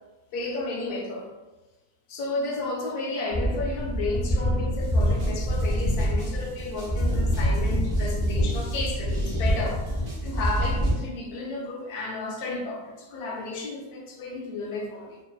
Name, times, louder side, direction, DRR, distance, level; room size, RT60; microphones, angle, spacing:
voice 1, 0.3-1.3 2.1-15.2, left 2 dB, 75° left, 0 dB, 1.0 m, -32 dB
sound 1, 3.3-10.9, equal, 10° left, 0.4 m, -25 dB
sound 2, 4.8-11.0, right 2 dB, 55° right, 0.6 m, -44 dB
2.6 x 2.5 x 2.3 m, 1.1 s
omnidirectional pair, 1.7 m